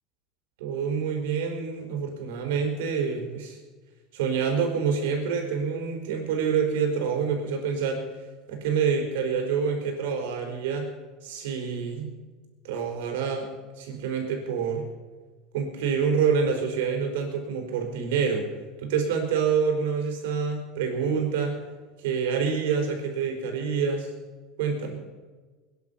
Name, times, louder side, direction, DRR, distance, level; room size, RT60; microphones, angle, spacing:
voice 1, 0.6-3.6 4.1-8.0 8.5-10.8 11.2-12.1 12.6-13.5 13.8-14.8 15.5-18.5 18.8-21.5 22.0-24.1 24.6-25.0, right 6 dB, 85° right, 3 dB, 4.6 m, -27 dB
21.5 x 11.0 x 5.9 m, 1.3 s
supercardioid pair, 135°, 0 cm